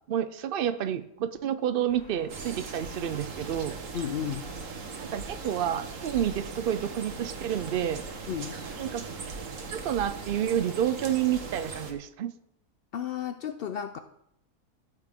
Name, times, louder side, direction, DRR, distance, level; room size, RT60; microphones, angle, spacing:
voice 1, 0.1-3.8 5.0-8.0 8.8-9.0 9.7-12.3, right 10 dB, 90° right, 12 dB, 0.4 m, -29 dB
sound 1, 1.9-10.6, left 2 dB, 60° left, 2.4 m, -54 dB
sound 2, 2.3-11.9, right 4 dB, 60° right, 1.5 m, -39 dB
voice 2, 3.9-4.5 8.3-8.6 12.9-14.0, left 9 dB, 85° left, 9 dB, 0.5 m, -33 dB
14.5 x 8.2 x 3.6 m, 0.77 s
omnidirectional pair, 1.6 m